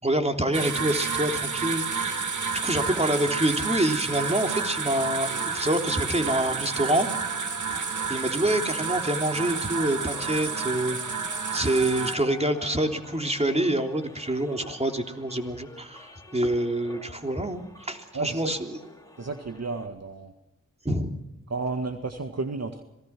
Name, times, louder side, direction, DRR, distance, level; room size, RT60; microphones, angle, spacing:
voice 1, 0.0-2.2 2.5-7.1 7.7-7.8 8.1-11.0 11.5-18.8 20.8-21.2, right 1 dB, 20° right, 4 dB, 3.4 m, -26 dB
sound 1, 0.5-12.2, right 5 dB, 70° right, 2.4 m, -30 dB
sound 2, 4.3-19.9, left 1 dB, 10° left, 4.8 m, -48 dB
voice 2, 18.1-18.5 19.2-20.3 21.5-22.8, right 3 dB, 55° right, 7 dB, 1.8 m, -32 dB
26.5 x 19.0 x 6.1 m, 0.95 s
cardioid pair, 40°, 31 cm